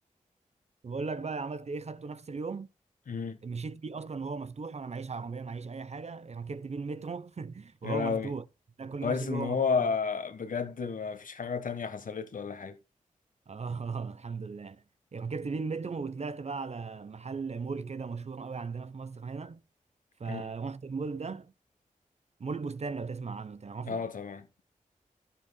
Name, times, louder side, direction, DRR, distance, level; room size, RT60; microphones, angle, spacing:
voice 1, 0.8-2.7 3.4-8.4 8.8-9.9 13.5-14.8 15.1-19.6 20.2-21.5 22.4-24.1, right 4 dB, 50° right, 0.8 m, -37 dB
voice 2, 3.1-3.4 7.8-8.3 9.0-12.8 20.3-20.5 23.9-24.5, left 5 dB, 75° left, 1.4 m, -32 dB
12.0 x 10.5 x 2.3 m
cardioid pair, 60°, 14 cm